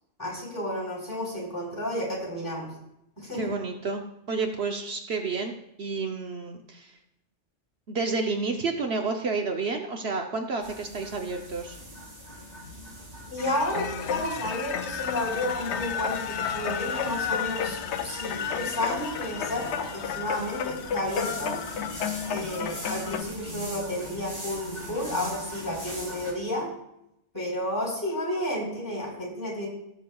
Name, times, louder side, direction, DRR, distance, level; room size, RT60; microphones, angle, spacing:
voice 1, 0.2-2.7 3.2-3.6 13.3-17.8 18.0-21.6 22.3-26.7 27.3-29.7, left 1 dB, 15° left, -5 dB, 3.8 m, -31 dB
voice 2, 3.3-4.0 4.3-6.9 7.9-11.8, right 4 dB, 65° right, 3 dB, 1.0 m, -30 dB
sound 1, 10.6-26.3, equal, 35° right, 3.1 m, -41 dB
sound 2, 13.4-23.2, left 8 dB, 70° left, 0.9 m, -32 dB
17.5 x 7.2 x 2.3 m, 0.81 s
omnidirectional pair, 1.2 m